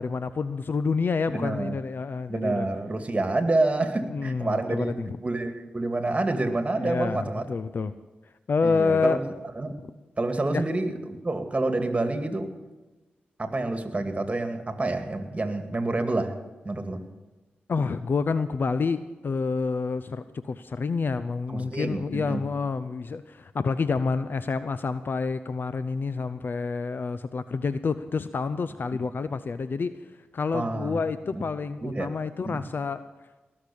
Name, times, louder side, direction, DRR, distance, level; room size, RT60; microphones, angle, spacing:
voice 1, 0.0-2.7 4.1-5.1 6.8-7.9 8.5-9.2 10.5-10.6 17.7-33.0, left 4 dB, 55° left, 13 dB, 0.6 m, -28 dB
voice 2, 1.3-1.7 2.3-7.5 8.6-9.2 9.6-9.7 10.2-12.5 13.4-16.4 16.6-17.0 21.5-22.4 30.5-31.0 31.3-31.4 31.8-32.1 32.4-32.6, right 2 dB, 30° right, 6 dB, 2.2 m, -28 dB
19.0 x 6.6 x 8.6 m, 1.2 s
supercardioid pair, 40°, 4 cm